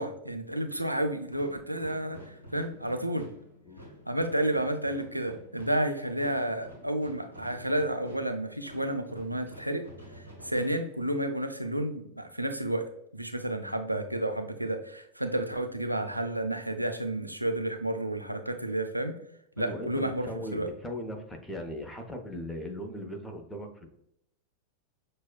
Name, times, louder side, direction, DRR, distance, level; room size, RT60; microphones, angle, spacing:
voice 1, 0.0-3.3 4.1-9.9 10.2-12.8 13.1-19.2 19.6-20.7, right 1 dB, 85° right, 6 dB, 0.3 m, -31 dB
sound 1, 1.3-11.5, equal, 80° left, 1.1 m, -50 dB
voice 2, 19.6-23.9, equal, 10° left, 3 dB, 0.6 m, -38 dB
6.0 x 2.3 x 2.2 m, 0.75 s
figure-of-eight pair, 90°, 0 cm